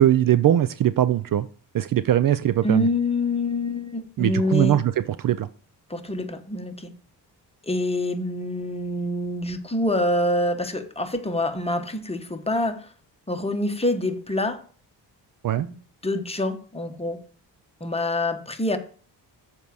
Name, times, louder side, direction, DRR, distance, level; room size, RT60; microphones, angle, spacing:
voice 1, 0.0-1.5 1.7-2.9 4.2-5.5 15.4-15.7, right 11 dB, 50° right, 0.5 m, -21 dB
voice 2, 2.6-4.8 5.9-6.9 7.6-12.9 13.3-14.6 15.6-15.8 16.0-17.2 17.8-18.8, left 1 dB, 15° left, 1.1 m, -26 dB
7.3 x 4.7 x 6.8 m
cardioid pair, 100°, 42 cm